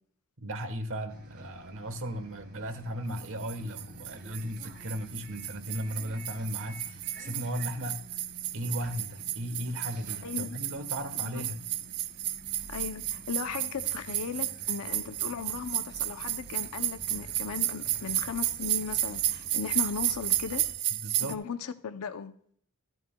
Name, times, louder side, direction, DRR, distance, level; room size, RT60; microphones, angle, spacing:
voice 1, 0.4-8.0 8.5-11.7 20.9-21.4, equal, 65° right, 1.1 m, -36 dB
Bus, 1.1-20.7, right 1 dB, 45° right, 2.0 m, -50 dB
sound 1, 3.2-21.3, right 13 dB, 85° right, 0.5 m, -33 dB
voice 2, 10.2-10.6 11.2-11.4 12.7-20.7 21.2-22.3, left 6 dB, 75° left, 0.6 m, -37 dB
14.5 x 10.5 x 2.2 m
head